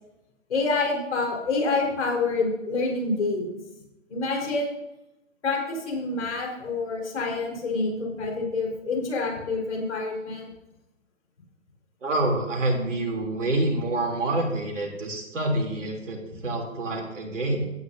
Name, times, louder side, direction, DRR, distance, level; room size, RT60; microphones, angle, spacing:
voice 1, 0.5-3.5 4.1-4.7 5.4-10.5, left 3 dB, 65° left, 0 dB, 4.6 m, -27 dB
voice 2, 12.0-17.7, right 2 dB, 80° right, 1 dB, 3.3 m, -27 dB
15.5 x 9.4 x 2.7 m, 0.95 s
hypercardioid pair, 135°, 37 cm